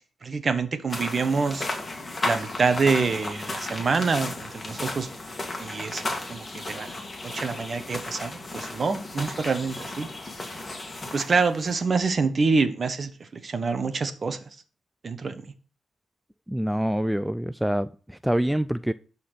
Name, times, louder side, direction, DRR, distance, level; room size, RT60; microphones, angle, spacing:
voice 1, 0.2-1.7 2.2-5.1 5.6-6.0 6.3-6.9 7.2-10.1 11.1-14.4 15.0-15.4, right 4 dB, 40° right, 1.3 m, -26 dB
sound 1, 0.9-11.8, left 2 dB, 25° left, 2.3 m, -34 dB
voice 2, 16.5-18.9, equal, 5° right, 0.4 m, -26 dB
11.5 x 4.3 x 6.8 m
cardioid pair, 95°, 0 cm